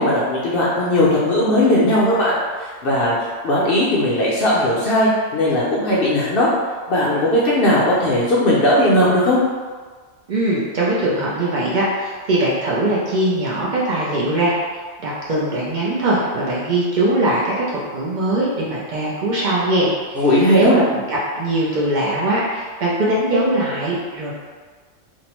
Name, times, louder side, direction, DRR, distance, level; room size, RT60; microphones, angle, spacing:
voice 1, 0.0-6.5 6.9-9.4 20.2-20.8, left 1 dB, 60° left, -6 dB, 0.6 m, -17 dB
voice 2, 10.3-14.5 15.0-19.9 20.6-24.3, right 1 dB, 60° right, -6 dB, 0.5 m, -21 dB
2.6 x 2.1 x 2.9 m, 1.5 s
omnidirectional pair, 1.3 m